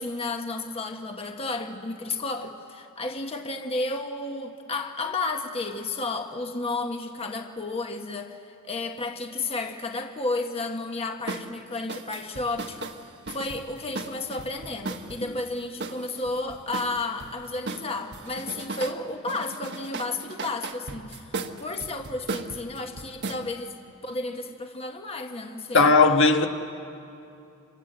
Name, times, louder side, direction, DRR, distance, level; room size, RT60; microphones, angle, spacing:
voice 1, 0.0-13.0 13.3-23.8 24.0-26.0, left 2 dB, 25° left, 1.2 m, -32 dB
sound 1, 11.3-11.5 11.9-15.2 15.8-17.3 17.7-19.0 19.3-23.4, right 3 dB, 50° right, 1.3 m, -36 dB
voice 2, 25.7-26.5, left 3 dB, 55° left, 1.3 m, -17 dB
27.5 x 26.5 x 7.9 m
head